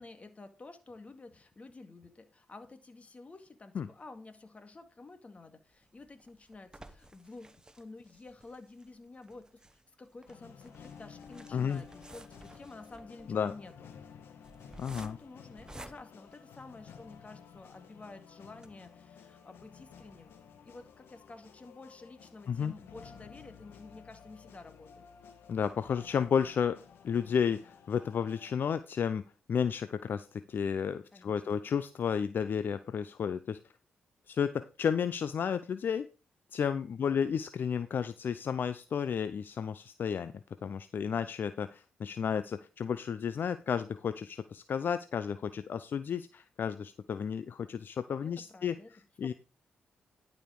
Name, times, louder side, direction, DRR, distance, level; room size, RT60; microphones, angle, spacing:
voice 1, 0.0-13.9 14.9-20.3 20.6-25.1 31.1-31.6 37.0-37.3 41.0-41.3 48.2-48.9 49.2-49.3, left 3 dB, 35° left, 2.1 m, -51 dB
sound 1, 5.7-17.1 17.6-17.7 18.0-18.1 18.5-18.7, right 1 dB, 20° right, 1.1 m, -54 dB
sound 2, 10.3-28.5, left 7 dB, 80° left, 1.5 m, -54 dB
voice 2, 11.5-11.8 13.3-13.5 14.8-15.2 22.5-22.7 25.5-26.8 27.0-33.6 34.3-36.1 36.5-40.3 40.6-48.8 49.2-49.3, left 7 dB, 60° left, 0.6 m, -32 dB
11.5 x 5.2 x 4.8 m
supercardioid pair, 60°, 4 cm